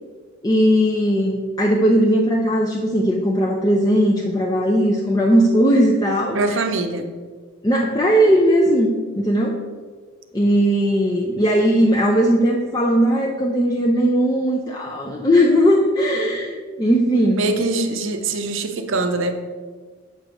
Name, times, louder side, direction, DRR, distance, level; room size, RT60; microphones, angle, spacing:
voice 1, 0.4-6.6 7.6-9.6 10.3-17.5, equal, 20° left, -1 dB, 0.5 m, -18 dB
voice 2, 6.3-7.1 17.4-19.3, right 3 dB, 60° right, 6 dB, 0.7 m, -23 dB
7.7 x 3.3 x 6.2 m, 1.5 s
head